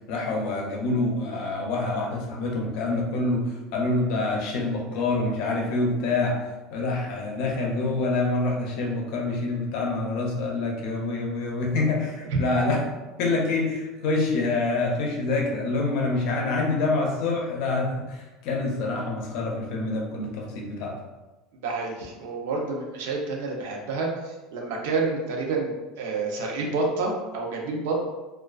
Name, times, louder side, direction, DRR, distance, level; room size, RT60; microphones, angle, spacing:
voice 1, 0.1-6.4 6.7-12.8 13.2-21.0, left 2 dB, 60° left, 0 dB, 0.5 m, -26 dB
voice 2, 21.6-28.0, right 3 dB, 90° right, 0 dB, 0.5 m, -29 dB
2.4 x 2.3 x 2.2 m, 1.2 s
cardioid pair, 160°, 0 cm